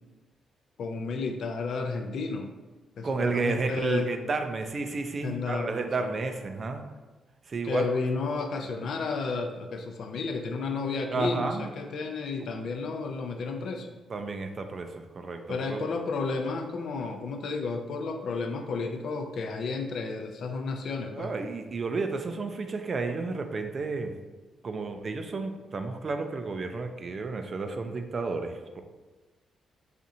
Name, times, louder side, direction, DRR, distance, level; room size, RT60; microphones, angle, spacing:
voice 1, 0.8-2.5 3.0-4.1 5.2-6.2 7.6-14.0 15.5-21.3, left 4 dB, 70° left, 4 dB, 0.4 m, -32 dB
voice 2, 3.0-6.8 7.5-7.9 8.6-8.7 11.1-11.7 14.1-15.9 21.1-24.1 24.6-28.8, right 3 dB, 50° right, 6 dB, 0.4 m, -31 dB
4.2 x 2.5 x 2.7 m, 1.2 s
cardioid pair, 70°, 0 cm